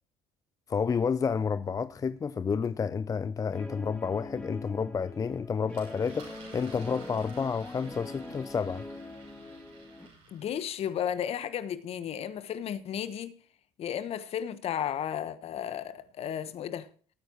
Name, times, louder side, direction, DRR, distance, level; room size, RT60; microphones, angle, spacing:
voice 1, 0.7-8.9, left 6 dB, 30° left, 0.4 m, -30 dB
Guitar, 3.5-10.1, left 2 dB, 10° left, 2.4 m, -43 dB
Engine, 5.7-11.0, right 3 dB, 70° right, 6.4 m, -53 dB
voice 2, 10.3-13.3 13.8-16.9, left 9 dB, 55° left, 1.1 m, -34 dB
18.5 x 9.1 x 2.9 m
hypercardioid pair, 65°, 12 cm